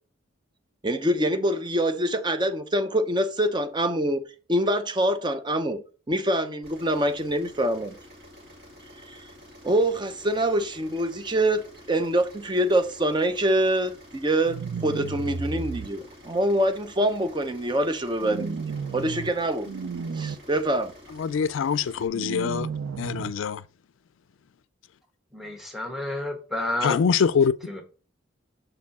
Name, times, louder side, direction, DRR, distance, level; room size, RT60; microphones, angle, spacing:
voice 1, 0.8-8.0 9.1-9.2 9.6-18.6 18.9-19.7 20.1-20.9, right 1 dB, 20° right, 0.6 m, -25 dB
sound 1, 6.6-22.1, left 1 dB, 50° right, 2.4 m, -49 dB
sound 2, 14.5-15.9 18.2-19.3 19.6-20.4 22.1-23.3, right 5 dB, 85° right, 0.4 m, -33 dB
voice 2, 21.2-22.7 23.0-23.6 26.8-27.5, left 6 dB, 75° left, 0.4 m, -24 dB
voice 3, 25.3-27.0 27.7-27.8, left 1 dB, ahead, 1.2 m, -30 dB
6.7 x 4.3 x 4.1 m
head